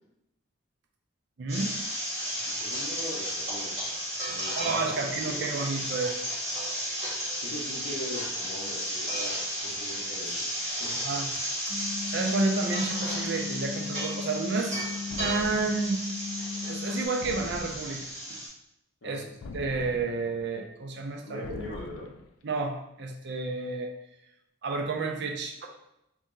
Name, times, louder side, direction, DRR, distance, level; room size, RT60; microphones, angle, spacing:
voice 1, 1.4-1.7 4.6-6.2 11.0-11.3 12.1-14.8 15.2-16.0 16.7-18.4 19.0-19.2 19.5-21.4 22.4-23.9 24.6-25.6, right 3 dB, 55° right, 3 dB, 0.5 m, -30 dB
sound 1, 1.5-18.5, equal, 30° right, 1.4 m, -33 dB
voice 2, 2.5-3.7 4.3-5.5 7.4-9.3 9.6-10.9 19.0-19.2 21.2-22.1, left 1 dB, 65° left, -6 dB, 0.7 m, -41 dB
sound 2, 11.7-17.1, left 5 dB, 15° right, 0.6 m, -37 dB
sound 3, 15.1-16.0 17.2-18.2 19.4-20.4 21.4-22.3, left 3 dB, 85° left, 0.3 m, -42 dB
2.9 x 2.7 x 3.6 m, 0.82 s
head